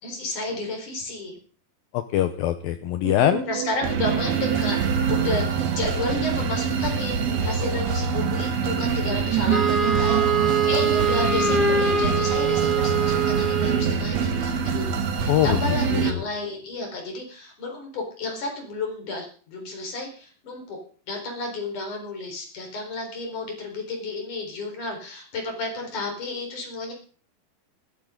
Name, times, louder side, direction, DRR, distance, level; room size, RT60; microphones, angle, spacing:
voice 1, 0.0-1.4 3.5-20.8 21.1-26.9, left 2 dB, 50° left, 2 dB, 5.8 m, -32 dB
voice 2, 1.9-3.5 15.3-16.2, left 12 dB, 75° left, 9 dB, 2.4 m, -23 dB
sound 1, 3.0-8.3 8.9-13.9, right 11 dB, 75° right, 3.2 m, -34 dB
sound 2, 3.8-16.1, right 6 dB, 55° right, 2.0 m, -25 dB
Wind instrument woodwind instrument, 9.5-13.9, right 5 dB, ahead, 2.0 m, -23 dB
19.5 x 14.0 x 3.8 m, 0.42 s
omnidirectional pair, 4.6 m